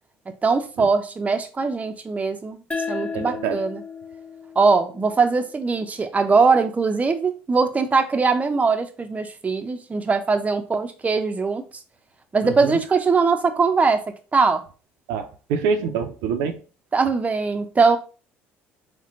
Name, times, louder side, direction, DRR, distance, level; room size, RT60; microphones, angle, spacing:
voice 1, 0.4-2.6 2.9-3.8 4.6-11.6 12.3-14.0 14.3-14.6 16.9-18.0, right 4 dB, 25° right, 0.6 m, -21 dB
sound 1, 2.7-5.9, left 5 dB, 15° left, 0.6 m, -34 dB
voice 2, 3.1-3.6 12.4-12.8 15.1-16.6, right 6 dB, 75° right, 0.6 m, -26 dB
4.2 x 2.2 x 3.7 m
hypercardioid pair, 70°, 6 cm